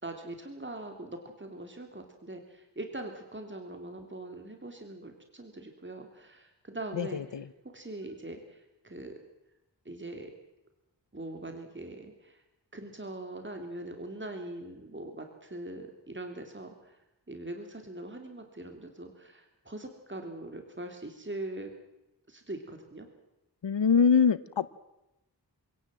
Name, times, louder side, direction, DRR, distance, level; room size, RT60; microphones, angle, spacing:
voice 1, 0.0-7.4 7.7-9.1 9.8-10.3 11.1-12.4 12.7-17.0 17.3-21.7 22.3-23.1, right 2 dB, 25° right, 4 dB, 3.2 m, -42 dB
voice 2, 23.6-24.7, left 6 dB, 85° left, 16 dB, 1.0 m, -23 dB
26.5 x 17.0 x 7.7 m, 0.94 s
wide cardioid pair, 80°, 42 cm